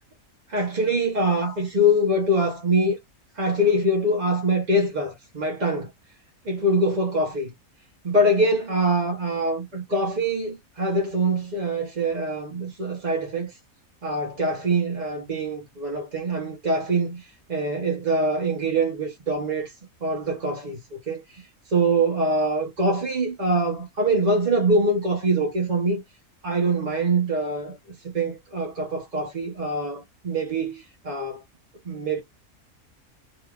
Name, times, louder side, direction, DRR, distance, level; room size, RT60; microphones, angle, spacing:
voice 1, 0.5-3.0 3.4-5.9 6.4-7.5 8.0-13.5 14.0-19.7 20.0-26.0 26.4-31.4 31.8-32.2, right 1 dB, 40° right, 0.7 m, -24 dB
3.2 x 2.7 x 2.3 m
omnidirectional pair, 1.5 m